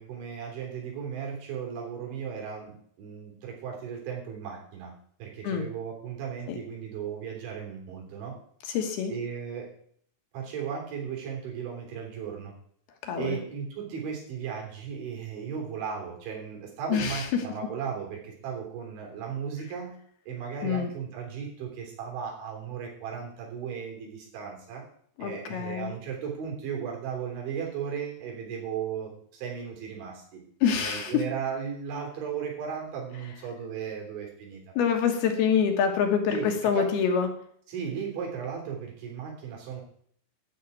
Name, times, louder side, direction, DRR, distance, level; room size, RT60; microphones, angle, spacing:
voice 1, 0.0-4.9 5.2-8.4 9.1-9.7 10.3-12.5 13.2-20.0 20.3-24.9 25.2-30.4 30.8-34.6 36.3-36.9 37.7-39.8, right 7 dB, 90° right, 0 dB, 5.8 m, -36 dB
voice 2, 8.7-9.1 13.1-13.4 16.9-17.2 20.6-20.9 25.2-26.0 30.6-31.2 34.8-37.3, left 7 dB, 65° left, 4 dB, 3.1 m, -26 dB
12.0 x 5.6 x 9.2 m, 0.62 s
omnidirectional pair, 5.2 m